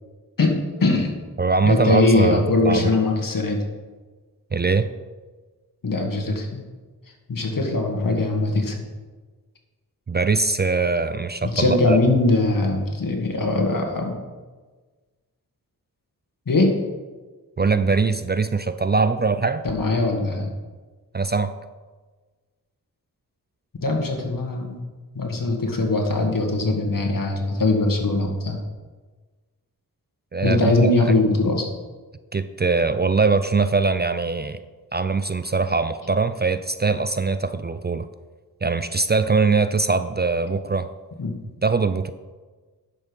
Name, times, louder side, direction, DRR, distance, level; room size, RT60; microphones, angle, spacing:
voice 1, 0.4-1.2 1.6-3.6 5.8-6.7 7.3-8.8 11.4-14.2 16.5-16.7 19.6-20.5 23.8-24.8 25.1-28.6 30.4-31.7 41.2-41.4, left 2 dB, 60° left, 2 dB, 2.0 m, -21 dB
voice 2, 1.4-2.9 4.5-4.9 10.1-12.0 17.6-19.6 21.1-21.6 30.3-31.1 32.3-34.6 34.9-38.1 38.6-40.9 41.6-42.1, right 4 dB, 30° right, 12 dB, 0.4 m, -22 dB
10.5 x 6.8 x 5.4 m, 1.3 s
cardioid pair, 65°, 37 cm